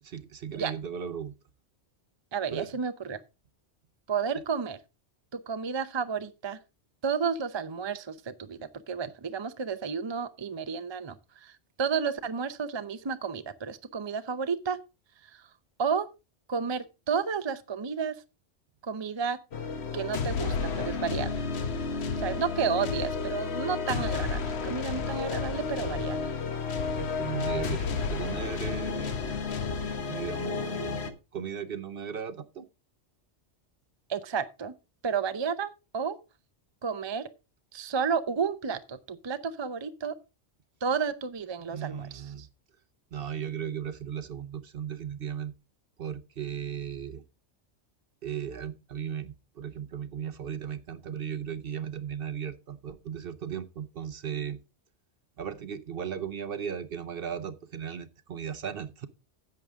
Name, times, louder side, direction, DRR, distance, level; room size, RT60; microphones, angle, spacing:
voice 1, 0.0-1.3 2.5-2.7 26.6-29.1 30.1-32.6 41.7-42.5 43.1-45.5 46.0-47.2 48.2-54.6 55.4-59.1, right 8 dB, 55° right, 0.9 m, -36 dB
voice 2, 2.3-3.2 4.1-4.8 5.3-6.6 7.0-11.1 11.4-14.8 15.2-15.4 15.8-16.1 16.5-18.2 18.8-19.4 19.9-21.4 22.2-26.2 34.1-34.7 35.0-36.2 36.8-37.3 37.7-40.1 40.8-42.5, right 6 dB, 30° right, 0.5 m, -31 dB
sound 1, 19.5-31.1, left 5 dB, 65° left, 1.2 m, -31 dB
10.5 x 7.8 x 3.6 m
omnidirectional pair, 1.2 m